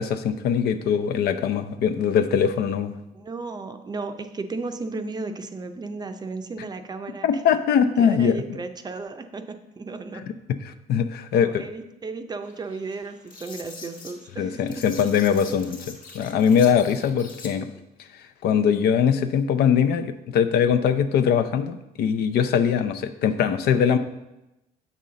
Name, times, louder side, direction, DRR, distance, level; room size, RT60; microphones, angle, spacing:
voice 1, 0.0-2.9 7.2-8.4 10.7-11.6 14.4-17.7 18.4-24.0, left 7 dB, 70° left, 9 dB, 0.6 m, -22 dB
voice 2, 3.1-7.4 8.0-10.2 11.3-14.8 15.4-15.5 17.6-17.7, right 3 dB, 25° right, 7 dB, 0.5 m, -35 dB
sound 1, 12.4-17.5, left 4 dB, 55° left, 1.2 m, -44 dB
7.3 x 5.5 x 3.8 m, 0.93 s
cardioid pair, 110°, 17 cm